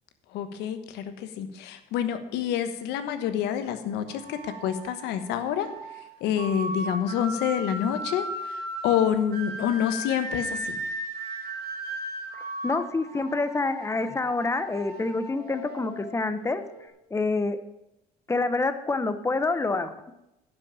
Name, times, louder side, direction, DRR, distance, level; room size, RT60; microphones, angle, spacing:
voice 1, 0.3-5.7 6.2-10.8, left 9 dB, 90° left, 10 dB, 1.2 m, -28 dB
sound 1, 4.1-16.9, right 1 dB, 65° right, 3.1 m, -37 dB
voice 2, 12.3-16.6 17.1-17.6 18.3-20.1, left 3 dB, 15° left, 11 dB, 1.0 m, -27 dB
11.0 x 5.9 x 8.9 m, 0.89 s
cardioid pair, 110°, 17 cm